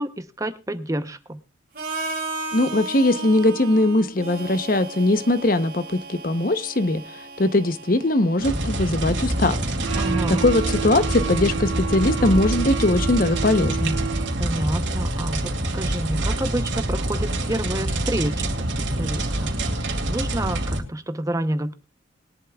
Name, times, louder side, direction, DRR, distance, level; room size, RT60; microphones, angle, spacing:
voice 1, 0.0-1.4 10.0-10.4 14.4-18.5 19.0-19.6 20.1-21.7, right 1 dB, 15° right, 10 dB, 0.7 m, -29 dB
Harmonica, 1.7-9.6, right 3 dB, 50° right, 2.6 m, -35 dB
voice 2, 2.5-14.0, left 2 dB, 45° left, 12 dB, 0.8 m, -21 dB
sound 1, 8.4-20.8, right 1 dB, 70° right, 2.6 m, -26 dB
sound 2, 9.8-14.7, right 9 dB, 85° right, 0.6 m, -31 dB
21.5 x 11.0 x 2.3 m, 0.30 s
head